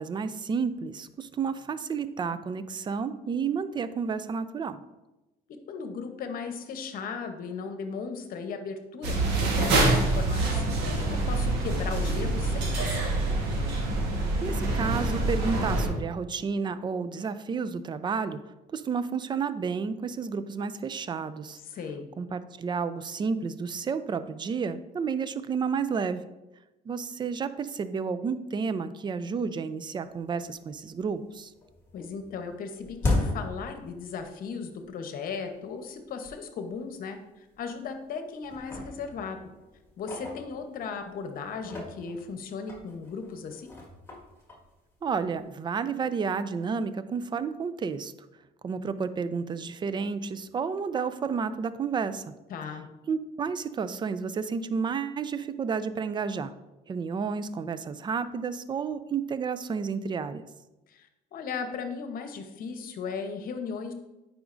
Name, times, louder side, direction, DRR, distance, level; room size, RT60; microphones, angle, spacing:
voice 1, 0.0-4.8 14.4-18.4 18.7-21.6 22.2-26.2 26.9-31.5 45.0-48.1 48.6-52.2 53.1-56.5 56.9-60.4, right 5 dB, 25° right, 13 dB, 0.4 m, -31 dB
voice 2, 5.5-10.6 11.0-13.1 21.6-22.1 31.9-39.4 40.0-43.7 52.5-52.9 60.9-63.9, left 5 dB, 60° left, 7 dB, 0.9 m, -37 dB
sound 1, 9.0-15.9, right 2 dB, 85° right, 1.4 m, -26 dB
sound 2, 30.2-30.3 30.7-31.3 31.6-34.5 34.8-34.9 35.6-35.7 36.2-36.3 36.7-36.8 37.6-38.1 38.4-41.0 41.5-45.4, left 2 dB, 15° left, 1.7 m, -35 dB
9.2 x 5.0 x 2.5 m, 1.0 s
cardioid pair, 110°, 17 cm